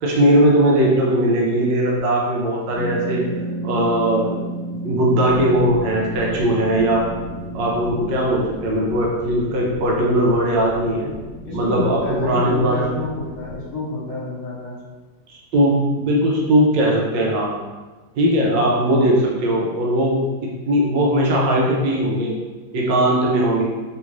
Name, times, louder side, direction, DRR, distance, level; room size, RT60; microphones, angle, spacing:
voice 1, 0.0-3.2 3.6-4.4 4.8-7.1 7.5-11.1 11.5-13.0 15.3-17.5 18.2-20.2 20.7-22.4 22.7-23.6, right 1 dB, 75° right, -3 dB, 1.3 m, -19 dB
sound 1, 2.7-8.3, right 1 dB, 80° left, 1.4 m, -31 dB
sound 2, 5.2-13.7, equal, 50° right, 1.1 m, -37 dB
voice 2, 11.4-14.8, left 2 dB, 60° left, -6 dB, 1.4 m, -29 dB
3.5 x 2.4 x 3.0 m, 1.3 s
omnidirectional pair, 2.0 m